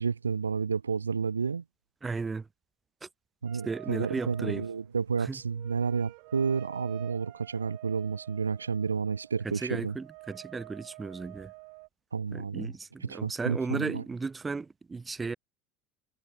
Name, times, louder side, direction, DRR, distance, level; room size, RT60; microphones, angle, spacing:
voice 1, 0.0-1.6 3.4-10.0 12.1-12.7 13.0-14.0, right 5 dB, 80° right, 1.5 m, -31 dB
voice 2, 2.0-2.4 3.6-4.6 5.3-5.4 9.4-11.5 12.3-15.4, right 4 dB, 20° right, 1.5 m, -35 dB
sound 1, 3.5-11.9, right 40 dB or more, 55° right, 5.4 m, -49 dB
figure-of-eight pair, 70°, 0 cm